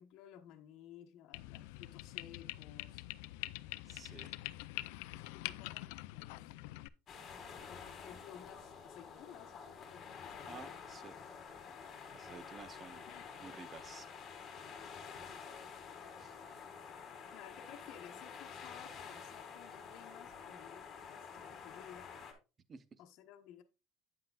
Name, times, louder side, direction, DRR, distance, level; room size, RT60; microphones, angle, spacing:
voice 1, 0.0-3.0 3.8-4.3 5.1-6.5 7.4-10.7 13.1-13.4 17.3-22.2 23.0-23.6, left 10 dB, 60° left, 1.1 m, -56 dB
sound 1, 1.3-6.9, left 18 dB, 85° left, 0.4 m, -45 dB
voice 2, 3.9-4.4 10.5-11.2 12.1-13.1 13.4-14.1 16.2-16.3 22.7-23.0, right 5 dB, 25° right, 0.6 m, -52 dB
sound 2, 7.1-22.3, left 6 dB, 30° left, 2.1 m, -49 dB
8.8 x 7.8 x 2.4 m
cardioid pair, 140°, 0 cm